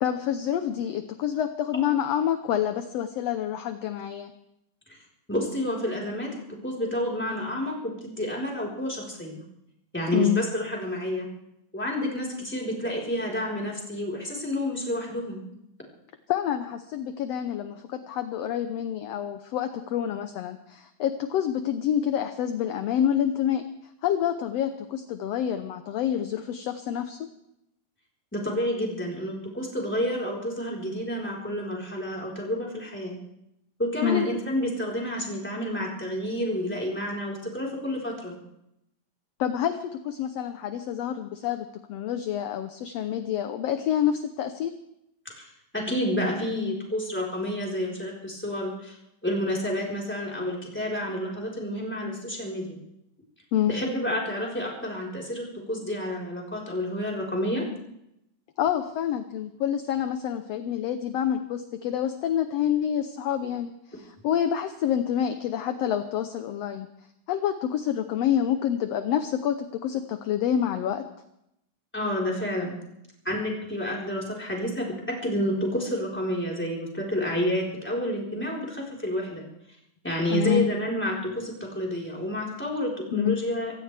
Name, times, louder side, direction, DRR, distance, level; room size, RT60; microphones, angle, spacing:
voice 1, 0.0-4.3 10.1-10.4 16.3-23.6 24.0-27.2 34.0-34.3 39.4-44.7 53.5-53.7 58.6-66.9 67.3-71.0 80.3-80.7 83.1-83.4, left 10 dB, 70° left, 8 dB, 1.6 m, -27 dB
voice 2, 5.3-9.4 9.9-11.3 11.7-15.4 28.3-33.2 33.8-38.4 45.2-45.4 45.7-49.0 49.2-52.8 53.7-57.6 71.9-72.7 73.2-79.5 80.0-83.7, equal, 5° left, -3 dB, 3.9 m, -29 dB
26.0 x 16.0 x 3.4 m, 0.80 s
omnidirectional pair, 3.6 m